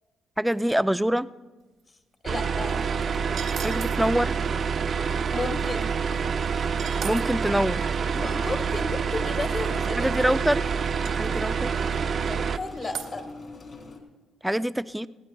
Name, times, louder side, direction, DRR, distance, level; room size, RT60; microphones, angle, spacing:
voice 1, 0.4-1.3 3.6-4.4 7.0-7.9 10.0-10.7 11.1-11.7 14.4-15.1, equal, 5° right, 13 dB, 0.4 m, -25 dB
voice 2, 2.2-2.7 5.3-5.9 8.1-10.4 12.2-13.3, left 3 dB, 30° left, 6 dB, 1.6 m, -33 dB
sound 1, 2.3-12.6, right 6 dB, 50° right, 0.6 m, -27 dB
sound 2, 2.6-14.0, left 2 dB, 50° left, 3.1 m, -44 dB
sound 3, 3.4-4.0 6.4-6.5 6.7-7.2 9.8-9.9 10.2-10.3 10.7-10.8 11.0-11.1 11.9-12.4 12.7-13.1, right 7 dB, 80° right, 1.5 m, -38 dB
21.5 x 16.0 x 2.3 m, 1.2 s
cardioid pair, 90°, 0 cm